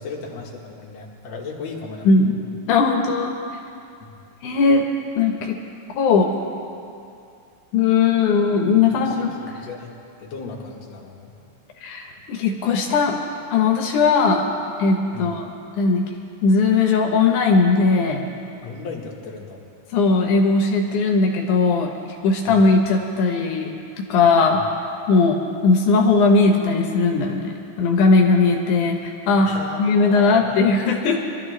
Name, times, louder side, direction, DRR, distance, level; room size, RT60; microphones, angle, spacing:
voice 1, 0.0-2.1 4.0-4.2 8.9-9.9 10.2-11.3 15.1-15.4 18.6-19.6 22.5-22.7 24.5-24.6 29.4-30.6, left 4 dB, 65° left, -2 dB, 2.6 m, -35 dB
voice 2, 2.1-2.4 2.7-3.3 4.4-4.8 5.2-5.6 6.0-6.3 7.7-9.3 11.8-13.2 13.5-14.4 14.8-15.4 15.8-16.0 16.4-18.2 19.9-21.9 22.2-23.7 24.1-24.6 25.1-25.4 25.6-29.5 29.8-31.2, left 4 dB, 85° left, 1 dB, 2.5 m, -18 dB
23.5 x 13.0 x 3.2 m, 2.5 s
omnidirectional pair, 3.4 m